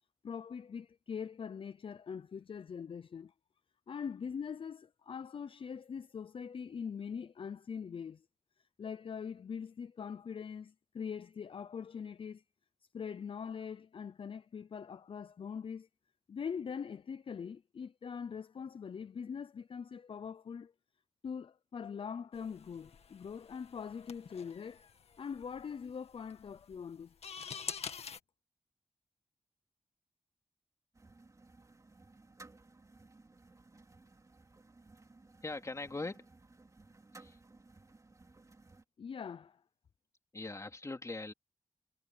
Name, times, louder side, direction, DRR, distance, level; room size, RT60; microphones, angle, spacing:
voice 1, 0.2-3.3 3.9-8.2 8.8-12.4 12.9-15.9 16.3-20.7 21.2-24.9 25.2-27.1 39.0-39.6, left 6 dB, 60° left, 0.5 m, -42 dB
sound 1, 22.3-28.2, left 6 dB, 85° left, 1.9 m, -47 dB
sound 2, 30.9-38.8, right 3 dB, 30° right, 2.8 m, -59 dB
voice 2, 35.4-36.3 37.1-37.4 40.3-41.3, left 2 dB, 30° left, 2.9 m, -41 dB
wide cardioid pair, 90°, 10 cm